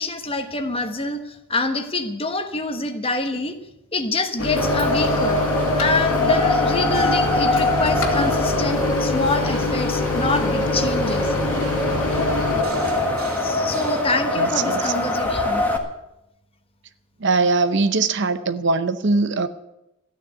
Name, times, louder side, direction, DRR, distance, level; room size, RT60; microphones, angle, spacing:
voice 1, 0.0-3.6 3.9-5.4 5.7-11.3 13.4-15.6, left 3 dB, 25° left, 1.2 m, -26 dB
Microwave oven, 4.4-12.6, left 3 dB, 80° left, 2.6 m, -25 dB
Wind, 4.6-15.8, left 1 dB, 10° left, 1.6 m, -23 dB
sound 1, 6.9-14.0, right 1 dB, 75° right, 2.5 m, -35 dB
voice 2, 14.4-14.8 17.2-19.5, right 3 dB, 60° right, 0.8 m, -21 dB
13.5 x 9.3 x 7.9 m
head